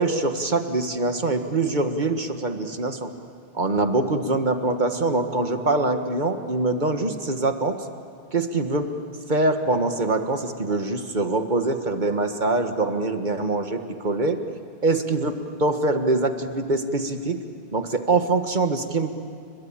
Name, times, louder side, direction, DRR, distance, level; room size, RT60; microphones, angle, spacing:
voice 1, 0.0-3.1 3.5-7.7 8.3-8.9 9.3-14.4 14.8-15.3 15.6-17.4 17.7-19.1, right 2 dB, 45° right, 6 dB, 1.7 m, -24 dB
29.5 x 21.5 x 8.9 m, 2.6 s
omnidirectional pair, 1.1 m